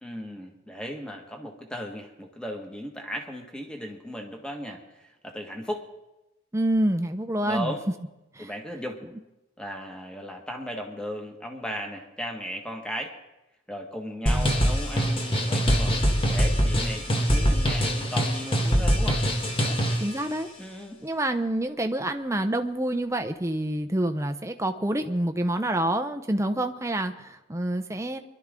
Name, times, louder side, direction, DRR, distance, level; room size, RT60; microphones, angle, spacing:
voice 1, 0.0-5.8 7.4-7.8 8.4-9.0 9.6-13.1 13.7-19.2 19.6-19.8 20.6-21.0, equal, 5° left, 2 dB, 1.7 m, -36 dB
voice 2, 6.5-7.7 8.3-8.5 14.3-14.6 20.0-20.5 21.0-28.2, right 1 dB, 15° right, 6 dB, 0.8 m, -27 dB
sound 1, 14.3-20.1, equal, 25° left, 1.6 m, -23 dB
23.5 x 12.0 x 3.8 m, 0.95 s
head